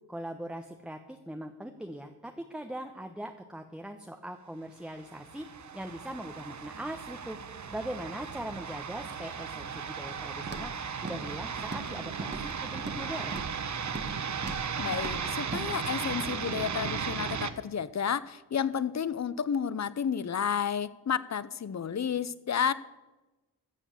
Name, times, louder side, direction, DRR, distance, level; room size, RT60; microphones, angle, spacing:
voice 1, 0.1-10.7 11.0-13.4, right 1 dB, ahead, 5 dB, 1.0 m, -41 dB
sound 1, 5.0-17.5, right 6 dB, 45° right, 1.0 m, -36 dB
Walk footsteps, 10.5-10.8 11.0-11.3 11.6-11.9 12.2-13.0 13.3-13.6 13.9-14.2 14.4-14.7 14.9-15.2 15.5-15.7, right 3 dB, 25° right, 1.3 m, -39 dB
voice 2, 14.8-22.7, left 7 dB, 45° left, 18 dB, 0.7 m, -31 dB
14.0 x 7.1 x 7.2 m, 1.1 s
cardioid pair, 70°, 39 cm